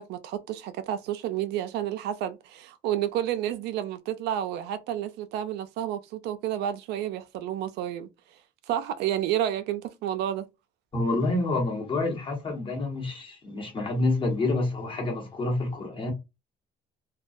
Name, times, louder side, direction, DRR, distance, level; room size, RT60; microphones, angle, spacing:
voice 1, 0.0-8.1 8.7-10.5, right 11 dB, 80° right, 0.4 m, -30 dB
voice 2, 10.9-16.1, left 2 dB, 30° left, 1.0 m, -28 dB
2.2 x 2.2 x 2.5 m
cardioid pair, 110°, 17 cm